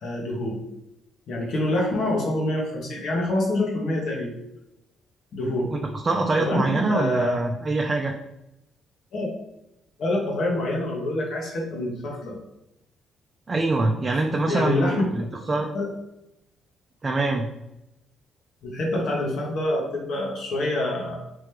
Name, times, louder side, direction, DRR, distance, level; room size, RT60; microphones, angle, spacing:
voice 1, 0.0-0.6 1.3-4.3 5.3-5.7 6.3-7.4 9.1-9.3 10.0-12.4 14.3-15.0 15.3-15.4 15.7-15.9 18.6-21.2, left 1 dB, 70° left, -2 dB, 1.4 m, -26 dB
voice 2, 6.0-8.1 13.5-15.7 17.0-17.5, right 2 dB, 35° right, 0 dB, 0.5 m, -24 dB
3.7 x 3.2 x 3.4 m, 0.89 s
supercardioid pair, 65°, 0 cm